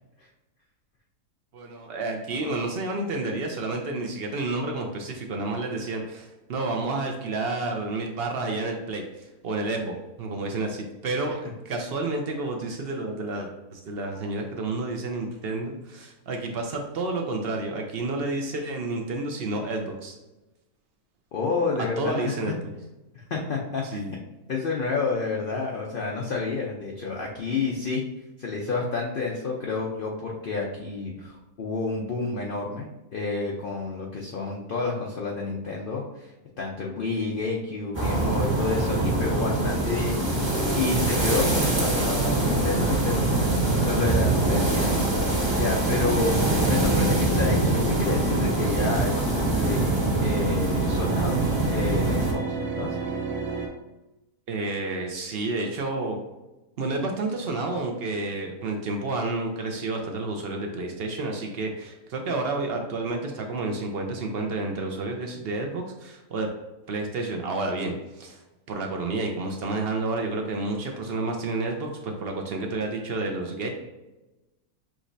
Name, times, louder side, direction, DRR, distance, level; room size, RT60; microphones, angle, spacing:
voice 1, 1.5-9.0 9.4-20.2 22.0-22.5 23.9-24.1 54.5-56.2 56.8-66.5 66.9-68.4 68.7-73.7, right 2 dB, 60° right, 3 dB, 0.6 m, -30 dB
voice 2, 21.3-22.3 23.1-24.2 24.5-28.0 28.4-36.3 36.6-40.3 40.7-45.1 45.6-51.4 51.7-53.0, left 4 dB, 60° left, -1 dB, 0.5 m, -30 dB
sound 1, 37.9-52.3, right 2 dB, 20° right, 0.9 m, -24 dB
sound 2, 44.2-53.7, right 3 dB, 80° right, 1.4 m, -33 dB
6.2 x 3.0 x 2.6 m, 1.0 s
omnidirectional pair, 1.6 m